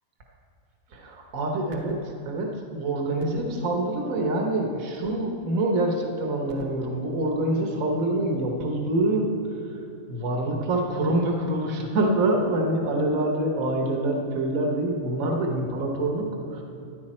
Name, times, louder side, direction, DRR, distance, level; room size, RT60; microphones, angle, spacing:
voice 1, 0.9-9.8 10.1-16.6, right 1 dB, 75° right, 1 dB, 1.6 m, -26 dB
14.0 x 10.0 x 4.3 m, 2.6 s
omnidirectional pair, 1.5 m